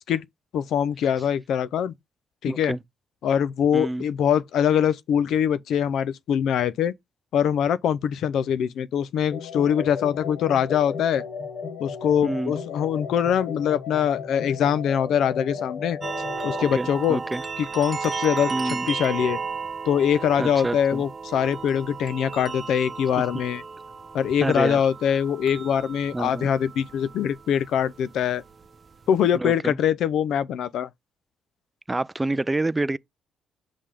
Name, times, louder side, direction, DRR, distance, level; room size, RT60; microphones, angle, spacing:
voice 1, 0.5-1.9 2.4-2.8 3.2-6.9 7.3-11.2 11.8-16.0 16.4-17.2 17.6-19.4 19.9-23.6 24.1-28.4 29.1-30.9, left 8 dB, 75° left, 0.4 m, -23 dB
voice 2, 2.5-2.8 3.7-4.0 12.2-12.5 16.5-17.4 18.5-18.9 20.4-21.0 23.3-23.4 24.4-24.8 26.1-26.5 29.3-29.8 31.9-33.0, right 2 dB, 15° right, 0.3 m, -28 dB
sound 1, 9.3-16.7, left 6 dB, 60° left, 1.5 m, -35 dB
sound 2, 16.0-29.4, right 5 dB, 35° right, 0.7 m, -34 dB
5.6 x 3.4 x 4.9 m
cardioid pair, 90°, 0 cm